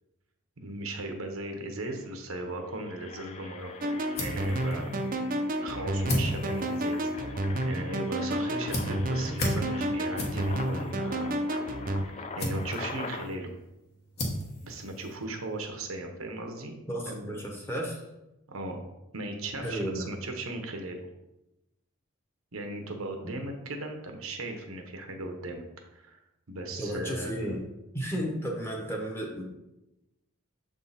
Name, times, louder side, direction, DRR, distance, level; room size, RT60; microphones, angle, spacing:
voice 1, 0.6-3.7 4.2-5.0 5.6-11.4 12.2-13.5 14.6-17.4 18.5-18.8 19.1-21.0 22.5-25.6 25.9-26.2 26.5-27.5, right 2 dB, 90° right, 4 dB, 1.0 m, -37 dB
Engine, 1.5-1.6 1.9-2.1 2.6-13.3, left 4 dB, 30° left, 0.4 m, -43 dB
sound 1, 3.6-15.7, equal, 50° left, 1.3 m, -38 dB
sound 2, 3.8-12.0, right 1 dB, 40° right, 0.5 m, -30 dB
voice 2, 16.9-18.0 19.6-20.1 26.8-27.7 27.9-29.4, equal, 10° left, -2 dB, 1.0 m, -33 dB
6.8 x 3.7 x 4.1 m, 0.96 s
head